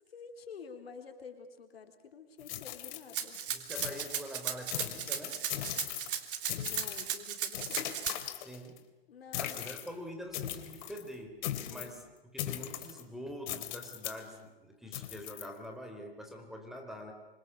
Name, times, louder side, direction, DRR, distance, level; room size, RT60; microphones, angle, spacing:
voice 1, 0.0-3.4 6.4-7.8 9.1-9.7 11.6-12.1, left 6 dB, 75° left, 6 dB, 4.3 m, -49 dB
sound 1, 2.4-3.4 3.7-4.3 4.7-6.2 6.5-7.1 7.5-8.8 9.3-9.9 10.3-11.0 11.4-12.0 12.4-13.0 13.5-14.2 14.9-15.5, left 12 dB, 45° left, 2.8 m, -39 dB
Rattle (instrument), 3.1-8.1, right 9 dB, 60° right, 3.2 m, -36 dB
voice 2, 3.5-5.4 8.4-8.9 9.4-11.4 11.7-17.1, equal, ahead, 4 dB, 3.7 m, -45 dB
27.0 x 26.0 x 6.9 m, 1.1 s
hypercardioid pair, 135°, 31 cm